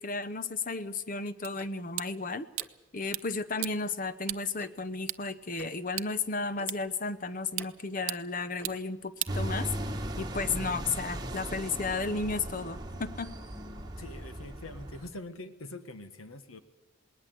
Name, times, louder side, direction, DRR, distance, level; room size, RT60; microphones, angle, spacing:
voice 1, 0.0-2.5 2.9-9.7 10.2-13.3, left 4 dB, 40° left, 13 dB, 0.8 m, -33 dB
sound 1, 1.4-10.0, right 16 dB, 90° right, 0.7 m, -41 dB
Tick-tock, 1.6-1.7 2.6-2.7 3.6-3.7 4.6-4.7 5.5-5.7 6.6-6.7 7.6-7.7 8.6-8.8, left 1 dB, 10° left, 1.2 m, -49 dB
sound 2, 9.3-15.1, right 1 dB, 20° right, 1.5 m, -37 dB
voice 2, 14.0-16.6, left 2 dB, 85° left, 10 dB, 1.5 m, -44 dB
20.0 x 19.0 x 7.8 m, 1.1 s
head